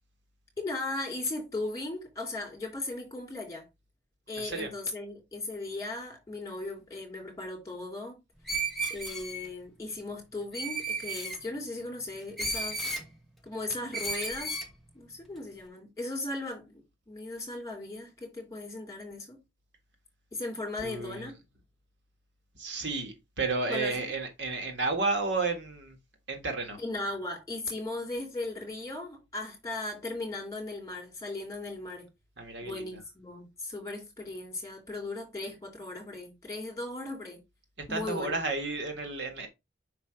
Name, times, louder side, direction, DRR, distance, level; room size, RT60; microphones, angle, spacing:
voice 1, 0.6-3.6 4.3-8.2 8.9-12.8 13.4-14.6 14.9-19.4 20.3-21.3 23.7-24.1 26.8-32.1 32.6-37.4 37.9-38.4, left 2 dB, 15° left, 3.6 m, -37 dB
voice 2, 4.4-4.7 20.8-21.3 22.6-26.0 26.3-26.8 32.4-32.8 37.9-39.5, right 3 dB, 65° right, 1.7 m, -32 dB
Screech, 8.5-9.5 10.5-11.4 12.4-13.1 13.9-14.7, right 2 dB, ahead, 1.1 m, -33 dB
5.8 x 4.8 x 4.4 m
head